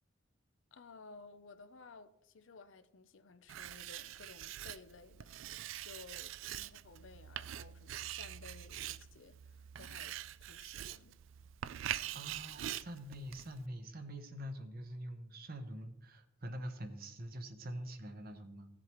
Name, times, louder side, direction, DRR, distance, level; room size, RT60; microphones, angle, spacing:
voice 1, 0.7-11.2, left 4 dB, 65° left, 0.6 m, -56 dB
Writing, 3.5-13.7, right 12 dB, 70° right, 0.3 m, -44 dB
voice 2, 12.1-18.7, equal, 45° right, 1.0 m, -45 dB
16.5 x 7.6 x 3.1 m
head